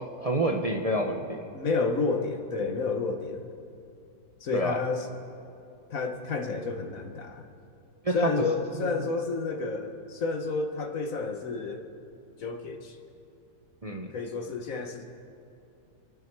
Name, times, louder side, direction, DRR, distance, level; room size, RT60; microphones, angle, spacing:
voice 1, 0.0-1.5 4.5-4.8 8.0-8.4 8.7-9.1 13.8-14.1, right 1 dB, 25° right, 2 dB, 0.9 m, -29 dB
voice 2, 1.5-3.5 4.4-5.1 5.9-7.5 8.1-11.8 12.4-13.0 14.1-15.0, left 4 dB, 55° left, 5 dB, 1.5 m, -30 dB
28.5 x 10.5 x 4.7 m, 2.7 s
omnidirectional pair, 1.7 m